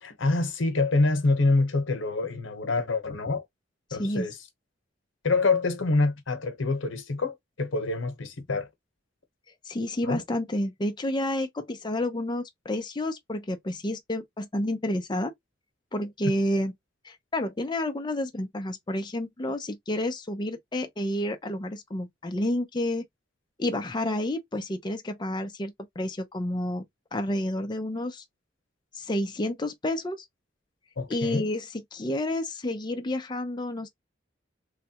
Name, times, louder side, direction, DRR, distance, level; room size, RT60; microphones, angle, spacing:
voice 1, 0.0-3.4 3.9-4.3 5.2-8.7 10.0-10.2 31.0-31.5, left 3 dB, 90° left, 0.9 m, -26 dB
voice 2, 4.0-4.3 9.7-15.3 15.9-16.7 17.0-23.0 23.6-26.8 27.1-28.2 28.9-30.2 31.1-33.9, left 1 dB, 25° left, 0.5 m, -30 dB
3.2 x 2.2 x 2.8 m
head